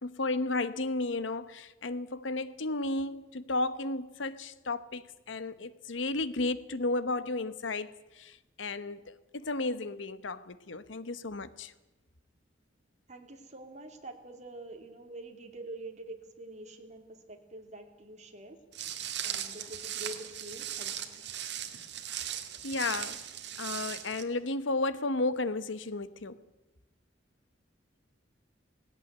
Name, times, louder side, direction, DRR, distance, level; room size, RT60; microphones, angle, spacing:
voice 1, 0.0-11.7 22.6-23.2 23.6-26.4, left 2 dB, 80° left, 1.1 m, -33 dB
voice 2, 13.1-18.6 19.2-21.3, right 2 dB, 40° right, 2.7 m, -46 dB
Walk footsteps, 18.7-24.2, right 10 dB, 65° right, 2.0 m, -38 dB
17.5 x 16.5 x 9.4 m
head